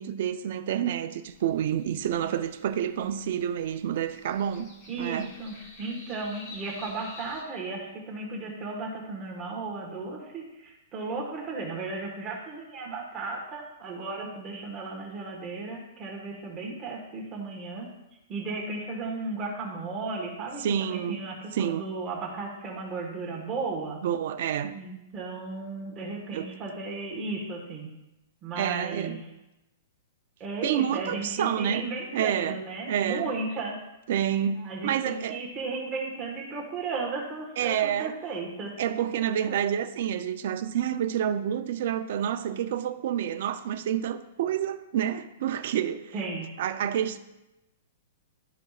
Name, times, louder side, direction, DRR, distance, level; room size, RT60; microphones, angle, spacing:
voice 1, 0.0-4.7 5.0-5.3 20.6-21.2 21.5-21.8 24.0-24.8 26.3-26.6 28.6-29.2 30.6-33.3 34.1-35.4 37.6-38.1 38.8-46.1 46.6-47.2, right 9 dB, 55° right, 0.5 m, -29 dB
sound 1, 1.3-7.4, left 3 dB, 40° left, 2.2 m, -50 dB
voice 2, 4.9-17.9 18.3-24.0 24.7-27.9 28.4-29.2 30.4-33.8 34.6-38.7 46.1-46.5, right 3 dB, 20° right, 1.5 m, -35 dB
12.5 x 5.0 x 2.4 m
hypercardioid pair, 160°, 0 cm